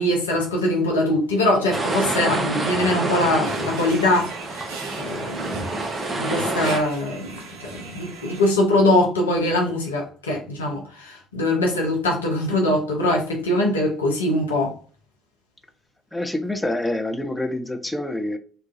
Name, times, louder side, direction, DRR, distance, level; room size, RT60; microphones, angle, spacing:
voice 1, 0.0-5.7 6.2-14.8, left 1 dB, 85° left, 0.5 m, -22 dB
sound 1, 1.7-6.8, right 2 dB, 30° right, 0.8 m, -27 dB
sound 2, 3.4-8.5, right 4 dB, 75° right, 0.5 m, -39 dB
voice 2, 16.1-18.4, left 1 dB, 10° left, 0.5 m, -26 dB
3.1 x 2.3 x 2.4 m
figure-of-eight pair, 50°, 0 cm